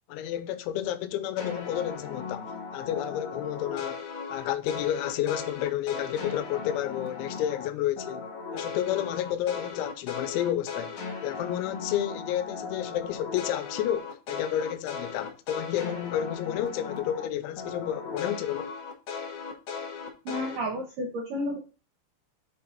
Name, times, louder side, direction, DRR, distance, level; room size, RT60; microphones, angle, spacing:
voice 1, 0.1-4.0 4.3-10.9 11.2-18.7, left 11 dB, 85° left, 3.0 m, -31 dB
sound 1, 1.4-7.7 8.0-17.3 17.6-20.6, left 5 dB, 70° left, 1.8 m, -37 dB
voice 2, 20.3-21.6, equal, 75° right, 2.0 m, -31 dB
7.2 x 4.3 x 3.9 m
omnidirectional pair, 5.2 m